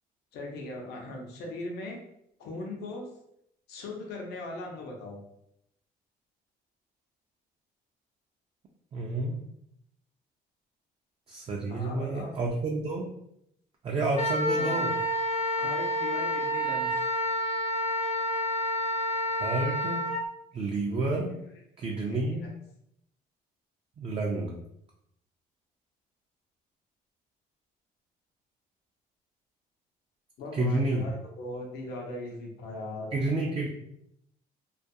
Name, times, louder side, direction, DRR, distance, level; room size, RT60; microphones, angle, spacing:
voice 1, 0.3-2.0 2.4-3.1 3.7-5.2 11.7-12.3 14.6-14.9 15.6-17.0 21.1-21.4 22.1-22.5 30.4-33.2 33.6-33.7, left 2 dB, 75° left, 1 dB, 0.6 m, -39 dB
voice 2, 8.9-9.5 11.3-13.1 13.8-14.9 19.4-20.1 20.5-21.3 21.8-22.5 24.0-24.6 30.5-31.1 33.1-33.7, right 2 dB, 35° right, -1 dB, 0.4 m, -30 dB
Wind instrument woodwind instrument, 14.1-20.2, equal, 35° left, 0.6 m, -29 dB
2.3 x 2.2 x 2.6 m, 0.75 s
cardioid pair, 110°, 17 cm